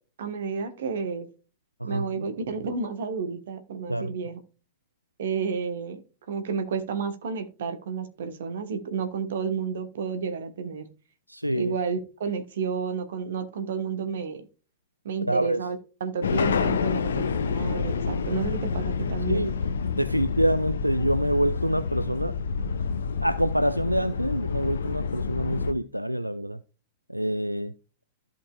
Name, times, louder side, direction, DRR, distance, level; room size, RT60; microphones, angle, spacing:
voice 1, 0.2-1.3 1.8-4.4 5.2-6.0 6.3-10.9 11.5-14.4 15.0-19.5, right 5 dB, 60° right, 1.3 m, -31 dB
voice 2, 1.8-2.3 3.9-4.1 11.3-11.7 15.3-15.6 19.3-19.5 20.0-22.3 23.2-26.6 27.1-27.7, right 1 dB, 90° right, 0.3 m, -26 dB
sound 1, 16.2-25.7, left 5 dB, 65° left, 0.6 m, -28 dB
14.0 x 5.2 x 2.3 m
figure-of-eight pair, 90°, 0 cm